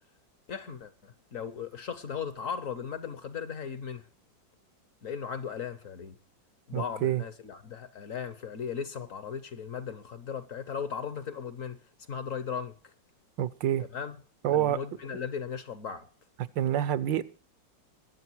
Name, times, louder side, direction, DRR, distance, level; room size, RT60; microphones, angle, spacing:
voice 1, 0.5-4.1 5.0-6.2 6.7-11.8 12.1-12.7 13.9-14.2 14.5-16.1, left 7 dB, 55° left, 1.0 m, -37 dB
voice 2, 6.7-7.2 13.4-13.9 14.4-14.8 16.6-17.2, right 11 dB, 80° right, 1.5 m, -27 dB
22.5 x 7.9 x 4.5 m
omnidirectional pair, 2.0 m